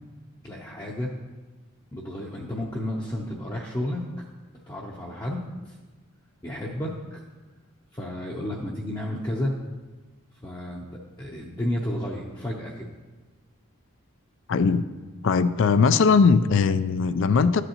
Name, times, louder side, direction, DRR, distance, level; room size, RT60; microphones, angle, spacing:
voice 1, 0.4-1.1 1.9-4.0 4.7-5.8 6.4-7.2 7.9-9.5 10.4-12.9, left 1 dB, 20° left, -4 dB, 0.6 m, -32 dB
voice 2, 14.5-14.8 15.2-17.6, left 5 dB, 60° left, 14 dB, 0.3 m, -20 dB
12.0 x 8.0 x 2.9 m, 1.2 s
head